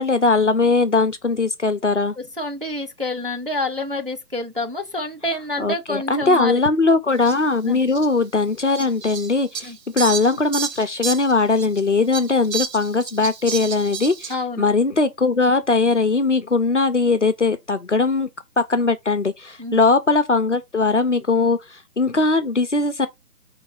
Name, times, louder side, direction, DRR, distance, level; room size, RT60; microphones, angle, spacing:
voice 1, 0.0-2.1 5.6-18.3 18.6-23.1, left 3 dB, 50° left, 0.5 m, -20 dB
voice 2, 2.4-6.6 7.6-7.8 9.6-9.8 14.3-14.7 19.6-19.8, left 2 dB, 35° right, 0.5 m, -27 dB
Fowl, 7.2-7.4 7.9-8.1 8.7-11.8 12.1-14.3, right 6 dB, 80° right, 1.0 m, -30 dB
4.5 x 3.1 x 3.7 m
hypercardioid pair, 170°, 49 cm